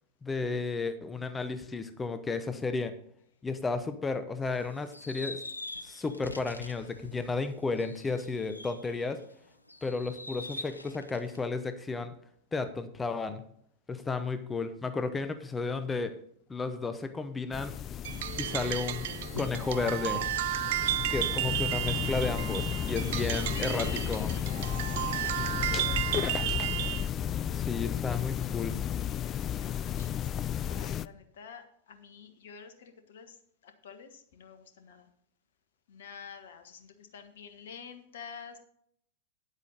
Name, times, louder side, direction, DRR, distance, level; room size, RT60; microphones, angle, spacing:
voice 1, 0.2-2.9 3.4-5.4 5.8-9.2 9.8-12.1 12.5-13.5 13.9-16.2 16.5-17.8 18.4-19.1 19.4-20.2 21.1-24.3 27.5-28.8, left 4 dB, 15° left, 9 dB, 0.8 m, -33 dB
sound 1, 4.4-9.2 9.7-11.4, left 2 dB, 85° left, 0.6 m, -44 dB
sound 2, 17.5-31.1, left 10 dB, 30° left, 0.3 m, -33 dB
sound 3, 18.0-27.1, right 14 dB, 55° right, 0.4 m, -33 dB
voice 2, 23.5-24.4 24.6-26.7 29.6-30.2 30.7-33.4 33.6-35.1 35.9-38.6, left 5 dB, 60° left, 8 dB, 1.4 m, -47 dB
9.9 x 8.1 x 4.0 m, 0.67 s
figure-of-eight pair, 90°, 0 cm